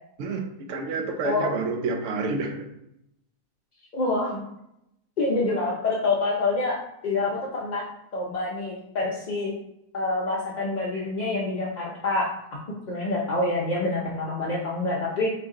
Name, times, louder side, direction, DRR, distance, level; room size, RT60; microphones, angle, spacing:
voice 1, 0.2-2.7, right 3 dB, 70° right, 4 dB, 0.9 m, -29 dB
voice 2, 3.9-4.4 5.2-7.8 8.1-9.5 9.9-12.6 12.8-15.3, left 2 dB, 45° left, -5 dB, 0.6 m, -27 dB
4.1 x 2.9 x 3.6 m, 0.81 s
omnidirectional pair, 1.5 m